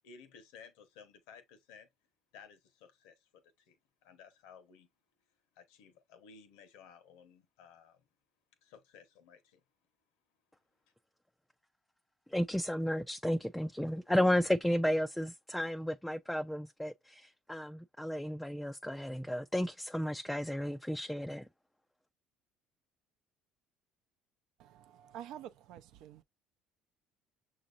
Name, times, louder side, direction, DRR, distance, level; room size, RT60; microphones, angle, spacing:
voice 1, 0.0-1.9 2.3-3.8 4.0-4.9 5.5-8.1 8.6-9.6, left 6 dB, 85° left, 1.0 m, -56 dB
voice 2, 12.3-21.5, left 1 dB, 5° left, 0.3 m, -33 dB
voice 3, 24.6-26.2, right 10 dB, 70° right, 0.5 m, -48 dB
6.3 x 2.7 x 2.5 m
supercardioid pair, 90°, 0 cm